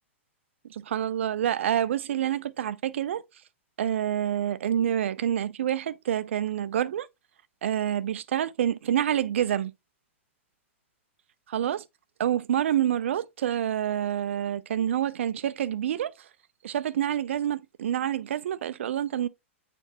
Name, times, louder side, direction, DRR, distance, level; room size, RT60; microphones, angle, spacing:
voice 1, 0.7-3.2 3.8-7.1 7.6-9.7 11.5-11.8 12.2-16.1 16.6-19.3, right 10 dB, 65° right, 0.7 m, -27 dB
9.0 x 3.5 x 2.9 m
hypercardioid pair, 110°, 7 cm